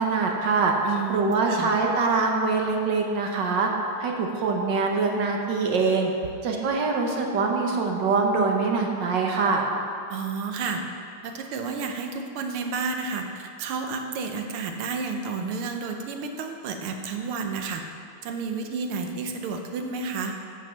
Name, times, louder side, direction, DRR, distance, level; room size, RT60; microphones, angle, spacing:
voice 1, 0.0-0.7 1.1-3.7 4.0-6.1 6.4-9.6, right 4 dB, 65° right, 1 dB, 1.4 m, -24 dB
voice 2, 0.8-1.2 1.5-1.7 10.1-10.8 11.2-17.8 18.2-20.4, right 4 dB, 90° right, 4 dB, 1.7 m, -31 dB
8.9 x 6.2 x 5.6 m, 2.5 s
omnidirectional pair, 2.3 m